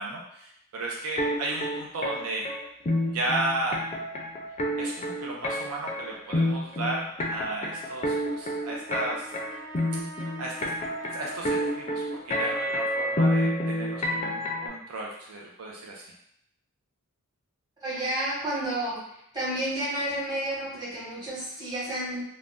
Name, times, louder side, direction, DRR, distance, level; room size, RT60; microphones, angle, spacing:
voice 1, 0.0-2.4 3.1-3.8 4.8-9.3 10.4-10.7 11.1-16.1, right 2 dB, 70° right, -2 dB, 0.4 m, -34 dB
sound 1, 1.2-14.7, left 1 dB, 30° left, 0.4 m, -28 dB
Brass instrument, 8.1-12.5, right 2 dB, 45° right, 0.8 m, -45 dB
voice 2, 17.8-19.0 19.3-22.2, right 1 dB, 20° right, -9 dB, 1.2 m, -30 dB
2.5 x 2.0 x 3.4 m, 0.75 s
head